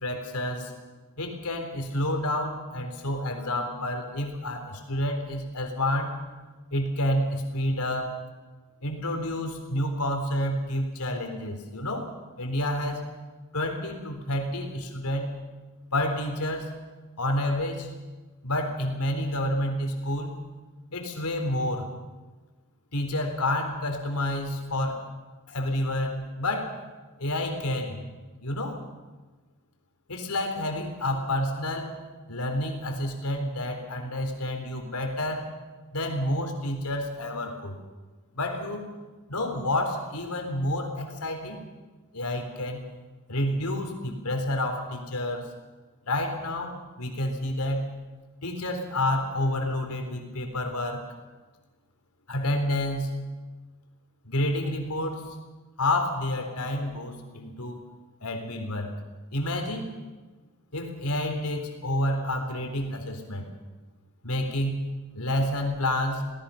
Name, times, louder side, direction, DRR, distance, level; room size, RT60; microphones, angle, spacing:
voice 1, 0.0-0.7 1.2-6.2 6.7-8.1 8.8-12.1 12.4-13.1 13.5-15.3 15.9-16.7 17.2-17.9 18.4-20.3 20.9-21.9 22.9-25.0 25.5-26.8 27.2-28.0 28.4-28.8 30.1-31.9 32.3-35.5 35.9-37.8 38.3-38.9 39.3-41.6 42.1-42.9 43.3-45.5 46.1-47.9 48.4-51.1 52.3-53.2 54.2-55.3 55.8-57.8 58.2-58.9 59.3-59.9 60.7-63.5 64.2-66.2, left 1 dB, 90° left, 4 dB, 3.9 m, -29 dB
28.5 x 18.5 x 5.8 m, 1.3 s
head